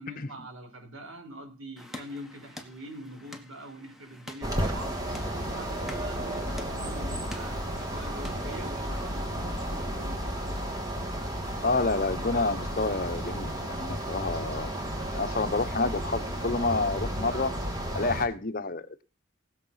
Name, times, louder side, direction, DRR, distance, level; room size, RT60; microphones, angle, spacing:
voice 1, 0.0-5.0 5.4-10.2, right 1 dB, 85° right, 5 dB, 4.8 m, -44 dB
sound 1, 1.8-9.1, left 1 dB, ahead, 1.5 m, -47 dB
sound 2, 4.4-18.3, equal, 20° right, 2.6 m, -33 dB
voice 2, 11.6-14.7 15.0-17.5 17.9-19.0, left 3 dB, 45° left, 10 dB, 0.9 m, -29 dB
18.5 x 7.1 x 5.7 m, 0.34 s
head